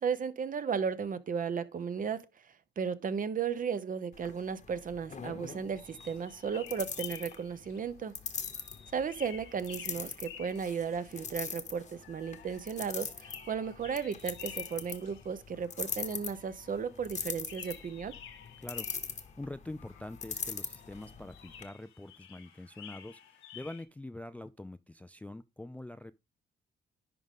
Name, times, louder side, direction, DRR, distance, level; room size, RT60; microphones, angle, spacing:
voice 1, 0.0-8.1 8.9-18.1, right 6 dB, 45° right, 0.7 m, -35 dB
sound 1, 4.1-21.7, left 6 dB, 35° left, 1.0 m, -42 dB
sound 2, 5.8-7.8 8.4-11.6 12.0-17.1 17.4-19.4 19.8-23.8, left 9 dB, 85° left, 1.4 m, -52 dB
voice 2, 19.4-26.1, left 2 dB, 5° left, 0.3 m, -44 dB
10.5 x 3.7 x 3.6 m
cardioid pair, 90°, 20 cm